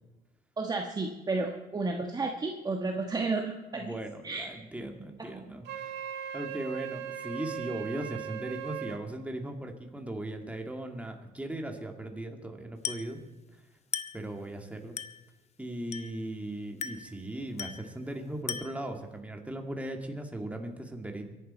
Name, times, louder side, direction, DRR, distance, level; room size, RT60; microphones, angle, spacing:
voice 1, 0.6-3.9 4.2-4.4 5.2-5.4, right 3 dB, 25° right, 3 dB, 1.4 m, -32 dB
voice 2, 3.7-5.9 6.3-13.2 13.5-13.6 14.1-15.0 15.6-21.3, right 1 dB, 10° right, 3 dB, 2.3 m, -38 dB
Wind instrument woodwind instrument, 5.6-9.0, right 10 dB, 80° right, 1.7 m, -38 dB
Glass, 12.8-13.2 13.9-14.3 15.0-15.3 15.9-16.3 16.8-17.2 17.6-17.9 18.5-18.9, left 7 dB, 40° left, 0.9 m, -37 dB
23.5 x 11.0 x 4.4 m, 1.1 s
cardioid pair, 110°, 17 cm